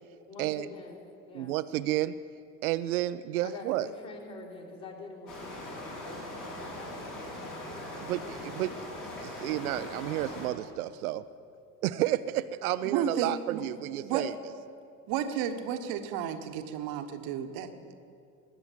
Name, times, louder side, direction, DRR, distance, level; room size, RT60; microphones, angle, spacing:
voice 1, 0.3-1.0 1.3-1.6 3.4-8.1 8.4-8.6 13.6-13.9, left 3 dB, 40° left, -5 dB, 3.9 m, -46 dB
voice 2, 1.3-2.2 2.6-3.9 7.9-8.7 9.2-11.2 11.8-14.3, right 14 dB, 70° right, 14 dB, 0.6 m, -31 dB
sound 1, 5.3-10.5, left 1 dB, 60° left, 4.1 m, -41 dB
voice 3, 12.8-13.6 14.0-14.2 15.1-17.9, right 8 dB, 50° right, 8 dB, 1.1 m, -32 dB
20.5 x 6.9 x 7.4 m, 2.4 s
figure-of-eight pair, 65°, 45 cm